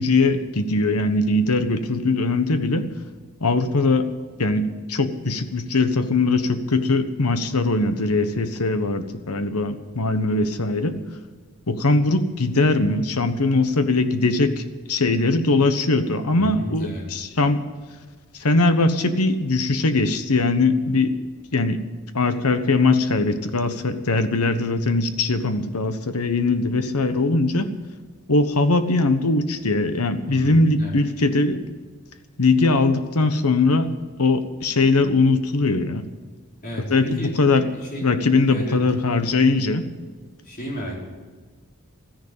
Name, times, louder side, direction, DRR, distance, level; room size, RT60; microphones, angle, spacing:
voice 1, 0.0-2.9 3.4-4.1 4.4-11.0 11.7-14.6 14.9-17.6 18.4-21.1 21.5-21.8 22.1-27.7 28.3-31.6 32.4-33.9 34.2-36.0 36.9-37.6 38.0-39.8, left 3 dB, 85° left, 9 dB, 1.2 m, -21 dB
voice 2, 16.4-17.0 30.3-31.0 36.6-38.0 38.5-38.8 40.4-41.0, equal, 40° left, -4 dB, 5.0 m, -33 dB
14.0 x 10.5 x 8.7 m, 1.4 s
head